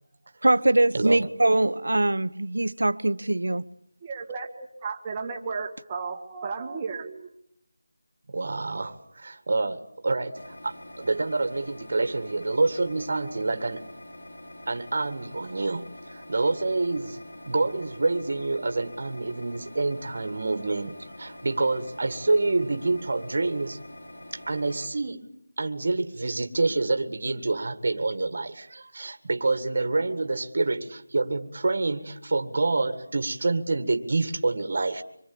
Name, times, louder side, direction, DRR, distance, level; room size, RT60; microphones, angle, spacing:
voice 1, 0.4-3.6, right 2 dB, 80° right, 1.2 m, -22 dB
voice 2, 0.9-1.3 8.3-13.8 14.7-17.2 17.5-23.8 24.3-25.3 25.6-35.0, right 3 dB, 35° right, 1.9 m, -27 dB
voice 3, 4.0-7.3, right 4 dB, 10° right, 1.6 m, -34 dB
sound 1, 10.3-24.9, left 1 dB, 85° left, 5.9 m, -45 dB
26.0 x 23.0 x 8.8 m
figure-of-eight pair, 180°, 0 cm